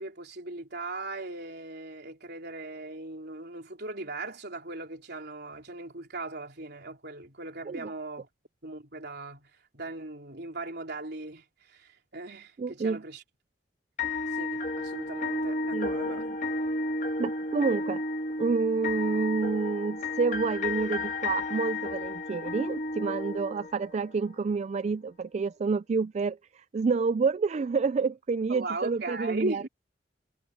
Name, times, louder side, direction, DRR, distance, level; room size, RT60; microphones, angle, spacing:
voice 1, 0.0-8.3 8.6-13.2 14.3-16.3 28.5-29.7, right 2 dB, 60° right, 3.9 m, -38 dB
voice 2, 12.6-13.0 15.7-16.1 17.2-18.0 18.4-29.7, right 4 dB, 35° right, 0.3 m, -29 dB
sound 1, 14.0-24.0, left 2 dB, 40° left, 1.9 m, -32 dB
head